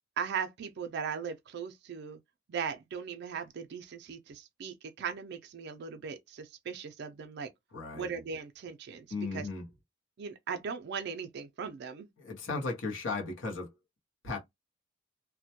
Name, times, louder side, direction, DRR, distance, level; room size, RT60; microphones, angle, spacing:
voice 1, 0.2-2.2 2.5-7.5 7.9-9.1 9.3-9.5 10.2-12.1, right 6 dB, 60° right, 0.4 m, -38 dB
voice 2, 7.7-8.1 9.1-9.7 12.2-13.7 14.2-14.4, left 3 dB, 70° left, 0.8 m, -35 dB
2.1 x 2.1 x 2.7 m
head